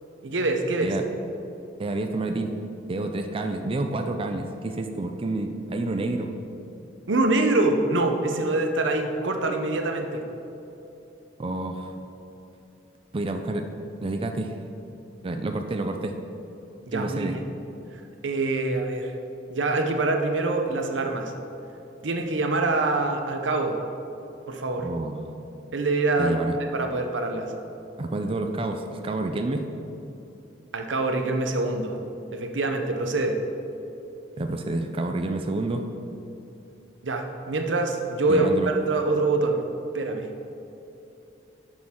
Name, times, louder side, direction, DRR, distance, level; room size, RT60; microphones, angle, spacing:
voice 1, 0.2-0.9 7.1-10.2 16.9-17.4 18.2-19.1 19.5-21.3 22.0-23.8 24.5-24.9 25.7-26.4 26.7-27.5 30.7-32.0 32.3-33.4 37.0-38.5 38.7-39.6 39.9-40.3, right 2 dB, 90° right, 4 dB, 0.8 m, -25 dB
voice 2, 1.8-2.5 2.9-6.3 11.4-11.9 13.1-13.7 14.0-14.5 15.2-16.2 16.9-17.3 24.8-25.2 26.2-26.6 28.0-29.7 34.4-35.9 38.3-38.7, right 2 dB, 30° right, 5 dB, 0.4 m, -29 dB
10.5 x 6.2 x 3.7 m, 2.9 s
head